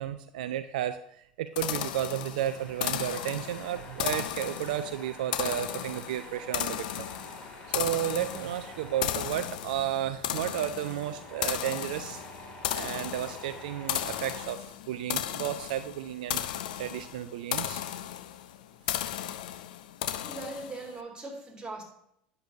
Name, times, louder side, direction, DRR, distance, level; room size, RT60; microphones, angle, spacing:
voice 1, 0.0-7.1 7.7-12.2 12.7-17.8, right 11 dB, 70° right, 10 dB, 0.3 m, -33 dB
sound 1, 1.6-20.9, left 12 dB, 70° left, 0.4 m, -35 dB
Tools, 2.5-14.5, left 1 dB, 30° left, 2.4 m, -48 dB
voice 2, 20.2-21.8, right 2 dB, 15° right, 0 dB, 2.6 m, -40 dB
9.5 x 6.6 x 2.7 m, 0.72 s
hypercardioid pair, 80°, 5 cm